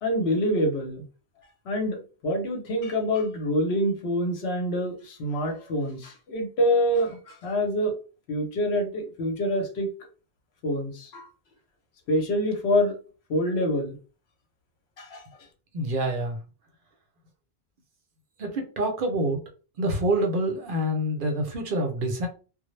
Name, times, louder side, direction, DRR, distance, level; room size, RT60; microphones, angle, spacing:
voice 1, 0.0-1.0 1.7-7.9 8.3-9.9 10.6-11.3 12.1-12.9 13.3-14.0 15.0-15.2, equal, 75° left, 4 dB, 1.0 m, -26 dB
voice 2, 15.7-16.4 18.4-19.4 19.8-22.3, right 1 dB, 60° right, 3 dB, 0.7 m, -26 dB
2.0 x 2.0 x 3.0 m, 0.35 s
omnidirectional pair, 1.1 m